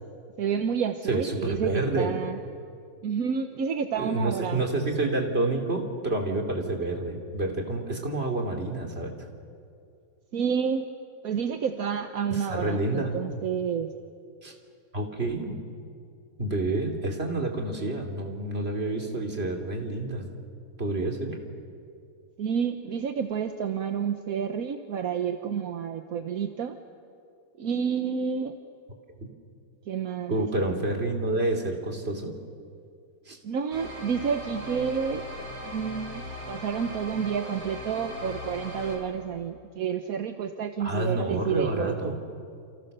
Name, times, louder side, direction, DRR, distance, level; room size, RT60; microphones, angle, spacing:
voice 1, 0.4-2.4 3.0-4.7 10.3-10.9 11.2-13.9 22.4-26.8 27.6-28.6 29.9-30.8 33.4-35.3 35.6-42.2, right 7 dB, 55° right, 7 dB, 1.1 m, -30 dB
voice 2, 1.1-2.1 4.0-9.1 12.3-13.2 14.4-14.5 14.9-15.6 16.4-20.3 20.8-21.4 29.2-29.3 30.3-32.3 33.3-33.4 40.8-42.2, right 2 dB, 30° right, 2 dB, 3.0 m, -29 dB
sound 1, 33.7-39.0, left 1 dB, 75° right, 5.7 m, -39 dB
28.5 x 28.5 x 6.7 m, 2.4 s
omnidirectional pair, 2.3 m